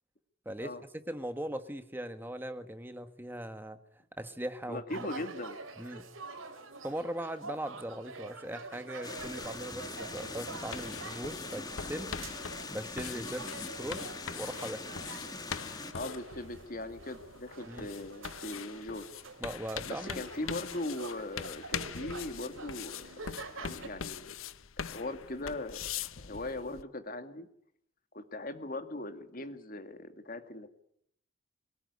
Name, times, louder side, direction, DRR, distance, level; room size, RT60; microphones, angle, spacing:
voice 1, 1.1-3.8 4.2-5.1 5.8-6.1 6.8-12.1 12.7-14.8 17.7-17.9 19.4-20.3, right 1 dB, 10° right, 9 dB, 1.5 m, -39 dB
voice 2, 4.7-5.6 15.9-19.0 19.9-23.1 23.6-24.3 24.8-25.8 26.2-27.5 28.1-30.7, left 2 dB, 45° left, 8 dB, 2.2 m, -39 dB
sound 1, 4.9-23.9, right 3 dB, 85° right, 3.2 m, -47 dB
sound 2, 9.0-15.9, left 3 dB, 20° left, 1.7 m, -43 dB
sound 3, 9.2-26.8, left 7 dB, 85° left, 0.9 m, -43 dB
23.0 x 18.5 x 9.7 m, 0.73 s
head